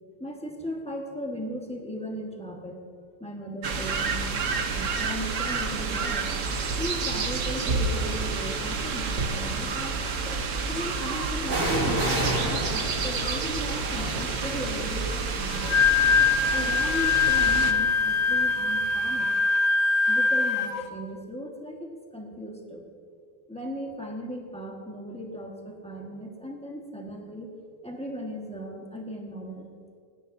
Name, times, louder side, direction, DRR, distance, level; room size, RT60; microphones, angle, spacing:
voice 1, 0.2-6.3 6.8-10.0 10.7-15.8 16.5-19.3 20.1-22.9 23.5-27.5 27.8-29.7, equal, 5° left, -1 dB, 1.0 m, -37 dB
sound 1, 3.6-17.7, right 4 dB, 55° right, 0.9 m, -29 dB
sound 2, 8.1-8.5 11.4-19.1 19.4-19.5, right 1 dB, 35° right, 2.6 m, -33 dB
Wind instrument woodwind instrument, 15.5-20.8, left 4 dB, 65° left, 1.5 m, -23 dB
27.0 x 10.0 x 2.7 m, 2.2 s
omnidirectional pair, 2.4 m